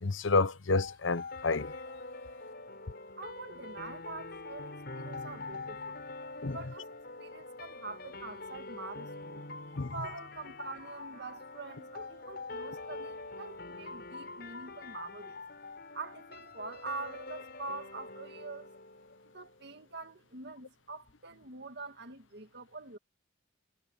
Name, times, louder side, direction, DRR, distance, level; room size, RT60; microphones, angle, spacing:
voice 1, 0.0-1.7 6.4-6.6 9.7-9.9, left 3 dB, 75° left, 1.0 m, -29 dB
sound 1, 0.8-19.7, left 3 dB, 55° left, 6.1 m, -45 dB
voice 2, 3.2-6.1 6.5-15.4 15.9-18.7 19.2-23.0, right 3 dB, 60° right, 2.0 m, -45 dB
head